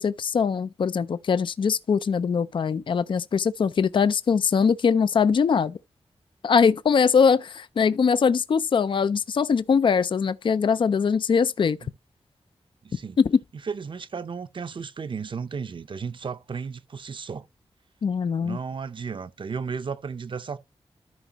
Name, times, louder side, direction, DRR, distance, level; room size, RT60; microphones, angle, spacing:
voice 1, 0.0-5.8 6.4-11.8 13.2-13.4 18.0-18.6, left 6 dB, 50° left, 0.4 m, -22 dB
voice 2, 12.8-13.2 13.6-17.5 18.4-20.6, right 5 dB, 50° right, 0.6 m, -34 dB
13.5 x 5.0 x 2.9 m
wide cardioid pair, 140°, 11 cm